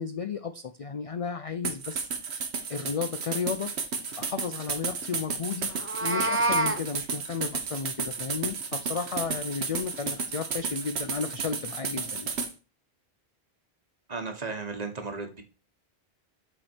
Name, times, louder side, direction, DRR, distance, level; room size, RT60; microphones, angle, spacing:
voice 1, 0.0-2.1 2.7-3.7 4.2-5.7 6.0-12.3, left 6 dB, 50° left, 10 dB, 0.4 m, -33 dB
sound 1, 1.6-12.5, right 5 dB, 80° right, 1.3 m, -33 dB
Meow, 5.7-6.8, right 2 dB, 20° right, 0.4 m, -26 dB
voice 2, 14.1-15.4, right 4 dB, 40° right, 5 dB, 1.3 m, -35 dB
7.7 x 4.5 x 4.4 m, 0.32 s
omnidirectional pair, 1.1 m